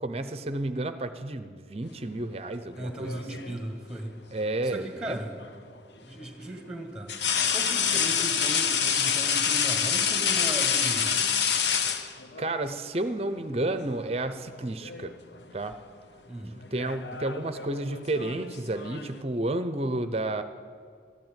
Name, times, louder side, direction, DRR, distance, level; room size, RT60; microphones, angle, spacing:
voice 1, 0.0-3.2 4.3-5.2 12.4-15.1 15.5-15.7 16.7-20.4, right 2 dB, 35° right, 11 dB, 0.6 m, -31 dB
sound 1, 2.8-3.6 5.4-5.6 7.1-12.6 13.7-14.0 14.3-15.1 15.4-15.7 16.6-19.2, left 7 dB, 80° left, 0.9 m, -27 dB
voice 2, 2.8-4.1 4.6-5.4 6.0-7.2 7.5-11.3 16.3-16.6, right 1 dB, 5° right, 4 dB, 1.6 m, -37 dB
13.5 x 11.0 x 9.0 m, 2.1 s
head